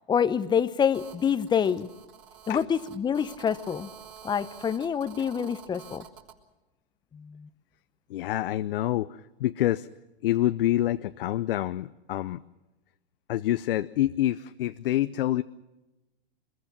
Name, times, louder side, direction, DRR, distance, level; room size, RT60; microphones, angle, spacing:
voice 1, 0.1-1.9 2.5-3.9 4.2-6.0 7.2-7.5, left 7 dB, 15° left, 14 dB, 0.8 m, -26 dB
Telephone, 0.9-6.4, right 8 dB, 35° right, 3.4 m, -48 dB
voice 2, 8.1-9.9 10.2-12.4 13.3-15.4, left 14 dB, 65° left, 12 dB, 0.7 m, -27 dB
23.5 x 22.0 x 5.9 m, 1.0 s
hypercardioid pair, 120°, 30 cm